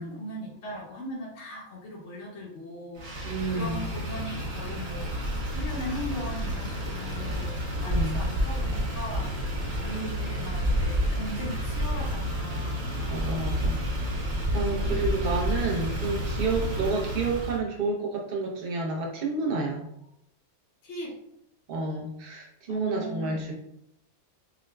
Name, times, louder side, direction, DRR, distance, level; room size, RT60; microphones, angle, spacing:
voice 1, 0.0-12.9 14.6-15.4 20.8-21.2 22.7-23.5, equal, 60° left, -4 dB, 0.9 m, -39 dB
Motor vehicle (road), 3.0-17.6, equal, 70° right, 1.2 m, -30 dB
voice 2, 3.2-3.8 7.9-8.2 13.1-19.9 21.7-23.5, right 3 dB, 50° right, -1 dB, 0.8 m, -30 dB
4.7 x 2.1 x 2.2 m, 0.77 s
omnidirectional pair, 1.5 m